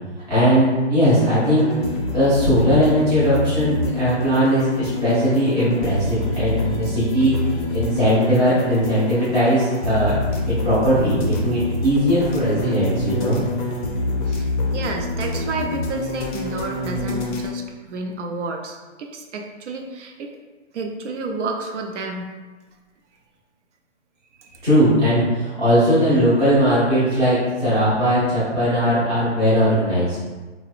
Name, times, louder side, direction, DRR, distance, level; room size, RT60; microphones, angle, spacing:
voice 1, 0.3-1.7 2.1-7.3 7.7-10.2 10.5-13.4 24.6-30.2, equal, 10° right, -12 dB, 0.5 m, -19 dB
sound 1, 1.0-17.5, left 2 dB, 45° left, 0.4 m, -26 dB
voice 2, 14.3-20.3 20.7-22.3 24.4-24.6, right 3 dB, 75° right, 2 dB, 0.5 m, -31 dB
2.8 x 2.0 x 2.4 m, 1.3 s
hypercardioid pair, 150°, 35 cm